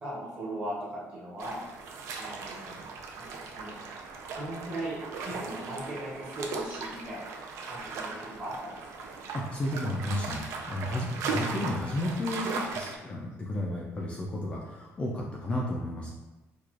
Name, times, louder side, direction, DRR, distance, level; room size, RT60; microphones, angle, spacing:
voice 1, 0.0-1.6 2.2-2.7 3.2-3.7 4.4-7.3 7.6-8.7, right 1 dB, 25° right, -7 dB, 1.2 m, -38 dB
sound 1, 1.4-13.0, right 4 dB, 65° right, 0.4 m, -38 dB
voice 2, 9.3-16.1, left 1 dB, 20° left, -3 dB, 0.3 m, -33 dB
4.5 x 2.3 x 2.5 m, 1.1 s
cardioid pair, 170°, 5 cm